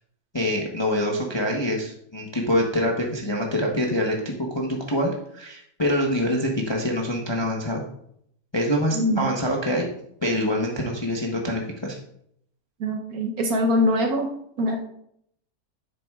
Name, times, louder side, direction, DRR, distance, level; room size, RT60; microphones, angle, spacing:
voice 1, 0.3-7.9 8.5-9.9 10.2-12.0, equal, 25° left, -1 dB, 0.6 m, -25 dB
voice 2, 8.9-9.3 12.8-14.3 14.6-14.8, left 1 dB, 60° right, 2 dB, 1.2 m, -23 dB
9.9 x 7.7 x 2.4 m, 0.71 s
omnidirectional pair, 1.9 m